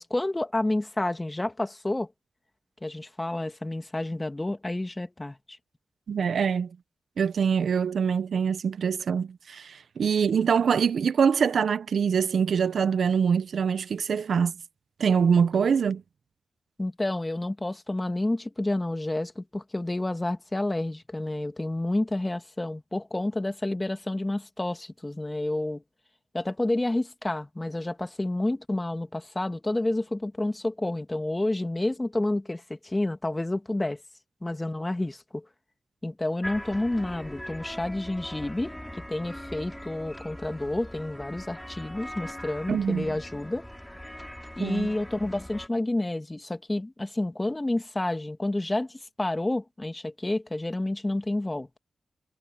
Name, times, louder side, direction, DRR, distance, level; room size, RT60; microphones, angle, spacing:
voice 1, 0.0-2.1 2.8-5.6 16.8-25.8 26.3-34.0 34.4-35.4 36.0-43.6 44.6-51.7, left 1 dB, 25° left, 2.3 m, -29 dB
voice 2, 6.1-6.7 7.2-14.5 15.0-16.0 42.7-43.1 44.6-44.9, right 6 dB, 75° right, 0.9 m, -24 dB
sound 1, 36.4-45.7, equal, 5° left, 4.9 m, -41 dB
supercardioid pair, 40°, 0 cm